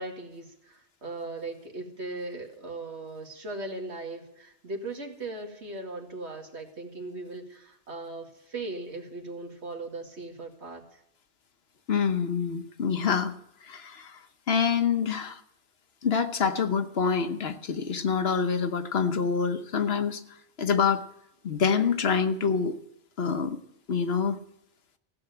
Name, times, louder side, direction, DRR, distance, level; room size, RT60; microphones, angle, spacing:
voice 1, 0.0-11.0, right 2 dB, 85° right, 2 dB, 2.4 m, -38 dB
voice 2, 11.9-13.3 13.6-14.2 14.5-15.4 16.0-20.2 20.6-21.0 21.4-22.7 23.2-23.6 23.9-24.4, left 6 dB, 65° left, 9 dB, 1.2 m, -26 dB
15.5 x 7.2 x 9.0 m, 0.79 s
omnidirectional pair, 1.1 m